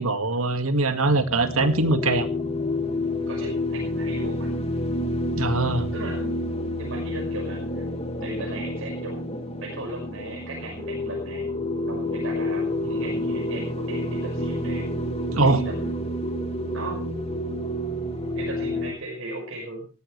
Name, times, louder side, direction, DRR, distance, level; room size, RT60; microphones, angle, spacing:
voice 1, 0.0-2.3 5.4-5.9 15.3-15.6, right 2 dB, 85° right, 9 dB, 1.9 m, -22 dB
sound 1, 1.3-18.9, left 1 dB, 30° left, 2.0 m, -29 dB
voice 2, 3.3-4.5 5.9-7.8 8.2-11.5 11.9-14.9 15.4-16.2 16.7-17.0 18.3-19.9, right 2 dB, 65° right, -1 dB, 5.8 m, -37 dB
19.0 x 15.0 x 3.3 m, 0.34 s
head